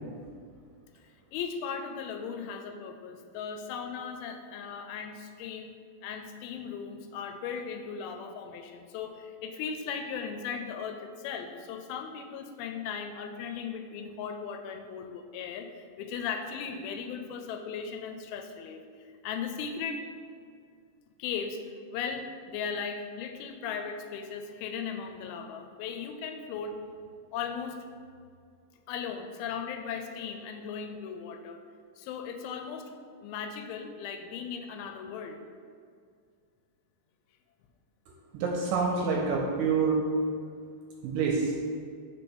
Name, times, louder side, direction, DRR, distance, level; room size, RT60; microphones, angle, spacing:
voice 1, 1.3-5.8 6.0-20.1 21.2-21.6 21.9-26.8 27.3-27.8 28.9-31.6 32.0-32.9 33.2-35.4, left 6 dB, 85° left, 5 dB, 2.4 m, -37 dB
voice 2, 38.3-40.0 41.0-41.5, right 5 dB, 80° right, 0 dB, 2.0 m, -27 dB
5.2 x 4.4 x 6.0 m, 2.2 s
omnidirectional pair, 4.3 m